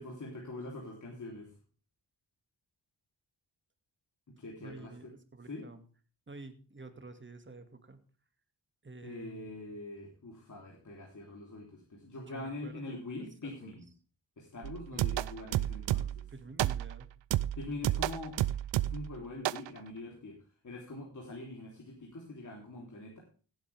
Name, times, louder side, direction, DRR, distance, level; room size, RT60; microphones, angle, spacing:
voice 1, 0.0-1.5 4.3-5.1 5.5-5.7 9.0-13.9 14.4-16.3 17.6-18.4 18.8-20.4 20.6-23.2, left 2 dB, 45° left, -1 dB, 3.5 m, -44 dB
voice 2, 4.6-5.8 6.3-8.0 8.8-9.8 12.2-13.7 14.9-15.2 16.3-17.1, right 3 dB, 25° right, 8 dB, 2.2 m, -50 dB
sound 1, 14.6-16.3 16.6-17.0 17.3-19.1 19.4-19.7, right 13 dB, 85° right, 0.6 m, -31 dB
15.5 x 9.3 x 3.5 m, 0.38 s
cardioid pair, 85°, 42 cm